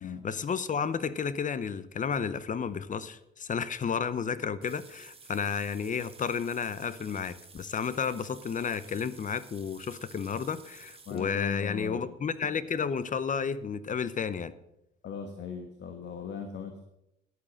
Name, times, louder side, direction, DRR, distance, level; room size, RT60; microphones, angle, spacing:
voice 1, 0.2-14.5, left 6 dB, 40° left, 16 dB, 0.8 m, -32 dB
sound 1, 4.6-11.3, right 4 dB, 30° right, 1.5 m, -53 dB
voice 2, 11.1-12.1 15.0-16.8, left 6 dB, 65° left, 6 dB, 1.4 m, -39 dB
11.0 x 8.6 x 6.3 m, 0.83 s
cardioid pair, 90°, 20 cm